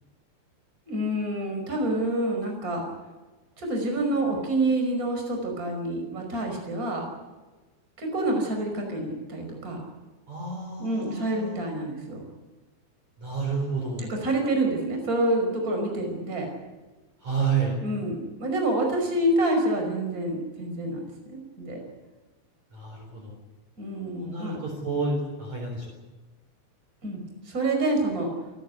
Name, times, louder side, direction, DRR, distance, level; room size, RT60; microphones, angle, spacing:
voice 1, 0.9-2.8 3.6-7.0 8.0-9.8 10.8-12.2 14.1-16.5 17.8-21.0 21.3-21.8 23.8-24.6 27.0-27.2 27.5-28.3, right 1 dB, 20° right, 2 dB, 5.4 m, -27 dB
voice 2, 10.3-11.6 13.2-14.2 17.2-17.8 22.7-23.3 24.1-26.0, right 4 dB, 40° right, 0 dB, 5.0 m, -30 dB
27.5 x 13.0 x 9.5 m, 1.2 s
omnidirectional pair, 5.4 m